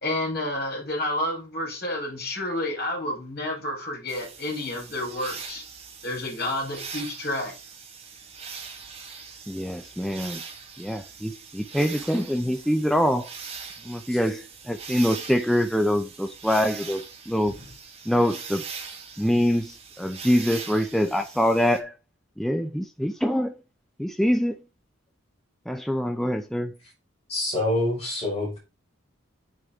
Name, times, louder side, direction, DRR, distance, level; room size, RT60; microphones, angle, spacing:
voice 1, 0.0-5.6 6.0-7.5, left 1 dB, 50° left, 4.1 m, -30 dB
sound 1, 4.1-21.8, right 5 dB, 30° right, 1.6 m, -41 dB
voice 2, 9.5-10.4 10.8-13.3 13.8-17.6 18.1-18.6 19.2-21.9 22.4-23.6 24.0-24.6 25.7-26.7, equal, ahead, 0.5 m, -25 dB
voice 3, 27.3-28.6, left 1 dB, 30° left, 4.9 m, -26 dB
8.6 x 6.5 x 3.6 m
head